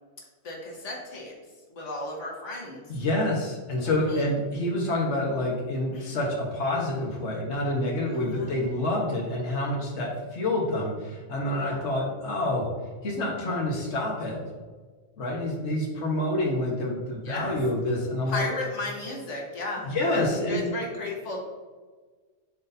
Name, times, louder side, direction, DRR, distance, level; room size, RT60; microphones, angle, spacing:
voice 1, 0.4-1.3 1.7-2.8 3.8-4.4 5.9-6.2 8.1-8.5 11.4-11.8 17.2-17.6 18.3-21.4, left 2 dB, 90° left, -1 dB, 1.7 m, -35 dB
voice 2, 2.9-12.7 13.0-14.4 15.2-18.5 19.8-20.6, left 1 dB, 70° left, -2 dB, 1.6 m, -27 dB
11.5 x 4.2 x 2.7 m, 1.4 s
omnidirectional pair, 1.2 m